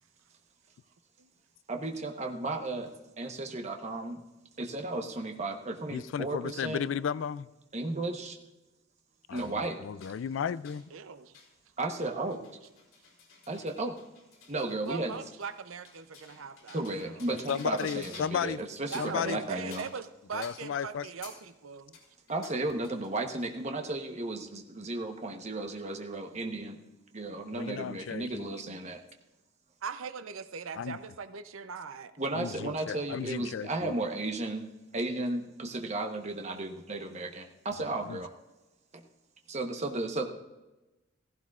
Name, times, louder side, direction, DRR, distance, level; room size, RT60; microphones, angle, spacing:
voice 1, 1.7-4.2 4.6-6.8 7.7-8.4 9.3-9.8 11.8-12.4 13.5-14.0 14.5-15.1 16.7-19.9 22.3-26.8 27.1-29.0 32.2-38.3 38.9-39.0 39.5-40.2, right 2 dB, 35° right, 1.1 m, -34 dB
voice 2, 5.9-7.5 9.3-10.8 17.5-18.6 19.0-19.4 20.3-21.1 27.5-28.5 30.7-31.0 32.3-33.9 38.0-38.2, left 7 dB, 65° left, 0.3 m, -34 dB
sound 1, 9.4-9.5 10.0-10.2 10.6-10.9 11.3-11.5 11.8-18.5 18.8-19.2 19.7-20.1 20.4-20.7 21.2-21.4 21.9-23.6, left 5 dB, 85° left, 3.1 m, -52 dB
voice 3, 10.9-11.4 14.8-17.1 18.9-22.0 29.8-32.1 39.9-40.0, right 5 dB, 80° right, 0.6 m, -40 dB
15.5 x 15.0 x 2.5 m
head